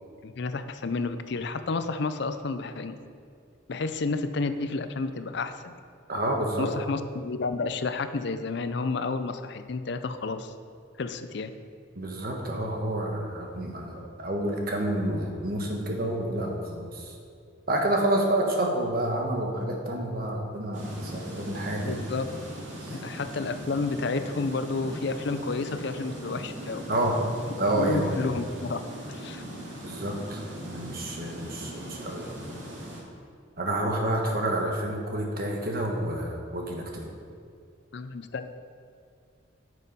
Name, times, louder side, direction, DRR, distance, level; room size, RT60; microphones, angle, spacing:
voice 1, 0.2-3.0 3.7-5.8 6.6-10.5 11.0-11.5 21.8-22.3 22.9-26.8 27.8-28.8 29.1-29.4 37.9-38.6, left 3 dB, 55° left, 10 dB, 0.5 m, -31 dB
voice 2, 6.1-6.7 11.9-17.1 17.7-22.0 22.8-23.0 26.9-27.2 27.6-28.3 29.8-32.3 33.6-37.1, right 1 dB, 45° right, 1 dB, 1.3 m, -29 dB
sound 1, 20.7-33.0, equal, 70° right, 2.3 m, -40 dB
9.4 x 6.4 x 5.4 m, 2.3 s
head